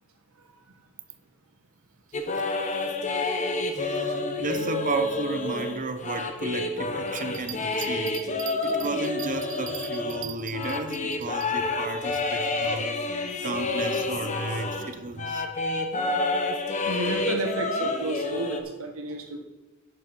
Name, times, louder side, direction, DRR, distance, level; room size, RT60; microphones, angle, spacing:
sound 1, 2.1-14.9 15.2-18.6, left 3 dB, 35° left, 1.0 m, -29 dB
voice 1, 3.7-12.9 13.4-15.5, right 3 dB, 40° right, 9 dB, 0.8 m, -33 dB
Bell, 7.1-11.5 12.0-12.1, right 14 dB, 60° right, 0.5 m, -41 dB
voice 2, 16.8-19.4, right 2 dB, 80° right, 4 dB, 1.4 m, -32 dB
11.0 x 7.7 x 4.7 m, 1.1 s
head